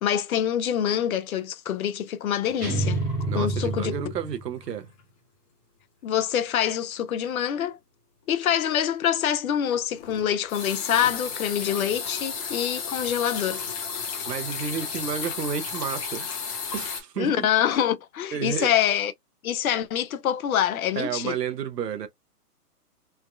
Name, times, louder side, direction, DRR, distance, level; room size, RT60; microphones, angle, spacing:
voice 1, 0.0-3.0 3.3-4.0 6.0-7.8 8.3-13.6 17.2-19.1 19.4-21.3, left 10 dB, 60° left, 0.6 m, -25 dB
sound 1, 2.4-4.0 4.3-4.6 5.0-5.1 9.7-17.0, left 5 dB, 20° left, 0.8 m, -34 dB
sound 2, 2.6-4.6, right 2 dB, 15° right, 0.5 m, -28 dB
voice 2, 3.3-4.9 14.3-16.3 16.7-17.5 18.3-18.7 20.9-22.1, right 8 dB, 80° right, 0.8 m, -31 dB
3.4 x 2.1 x 2.3 m
hypercardioid pair, 150°, 48 cm